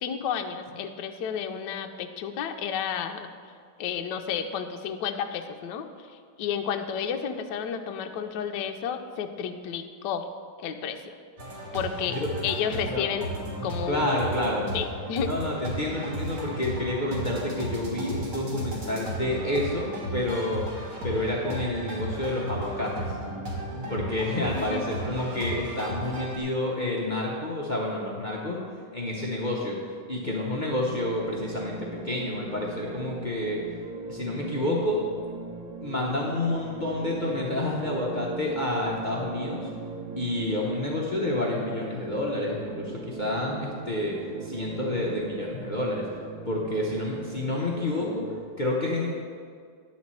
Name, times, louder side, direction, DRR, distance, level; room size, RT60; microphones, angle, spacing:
voice 1, 0.0-3.3 3.8-10.3 10.6-11.1 11.7-12.2 12.4-13.3 13.6-14.1 14.7-15.3 24.5-24.8, left 7 dB, 70° left, 6 dB, 1.1 m, -31 dB
sound 1, 11.4-26.4, right 1 dB, 55° right, 2.1 m, -35 dB
voice 2, 13.9-14.7 15.3-20.6 21.0-23.2 23.9-28.6 28.9-29.7 30.1-33.6 34.1-35.0 35.8-39.7 40.2-46.0 46.5-48.3 48.6-49.1, left 1 dB, 45° left, -3 dB, 0.6 m, -29 dB
sound 2, 30.9-48.4, right 4 dB, 75° right, 1.4 m, -39 dB
10.5 x 4.2 x 7.5 m, 2.1 s
omnidirectional pair, 2.3 m